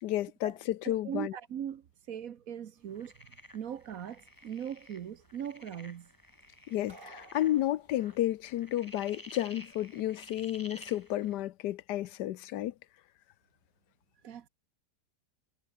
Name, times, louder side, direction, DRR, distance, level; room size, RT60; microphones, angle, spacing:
voice 1, 0.0-1.3 6.7-12.7, left 13 dB, 85° left, 1.3 m, -32 dB
voice 2, 0.8-3.3 3.5-6.1 14.2-14.5, right 9 dB, 60° right, 1.3 m, -40 dB
sound 1, 2.9-11.3, left 1 dB, 10° left, 3.6 m, -53 dB
sound 2, 6.9-8.2, right 3 dB, 30° right, 2.6 m, -54 dB
omnidirectional pair, 1.7 m